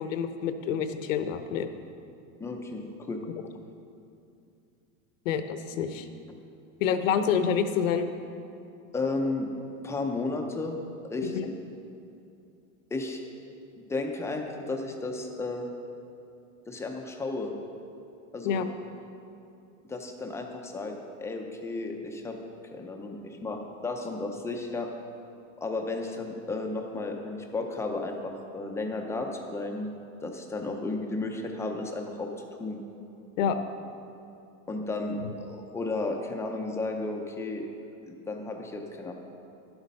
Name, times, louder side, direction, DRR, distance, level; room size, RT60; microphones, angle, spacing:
voice 1, 0.0-1.7 5.2-6.1 6.8-8.1 11.2-11.5 18.4-18.7 33.4-33.6 35.2-35.3, left 7 dB, 70° left, 9 dB, 1.0 m, -27 dB
voice 2, 2.4-3.2 8.9-9.5 9.8-10.8 11.0-11.6 12.9-13.2 13.9-15.7 16.7-17.5 18.3-18.6 19.9-22.4 22.7-24.9 25.6-29.9 30.2-32.3 32.6-32.8 34.7-37.7 38.1-39.1, left 2 dB, 5° left, 2 dB, 0.5 m, -33 dB
11.0 x 8.2 x 5.4 m, 2.6 s
supercardioid pair, 150°, 41 cm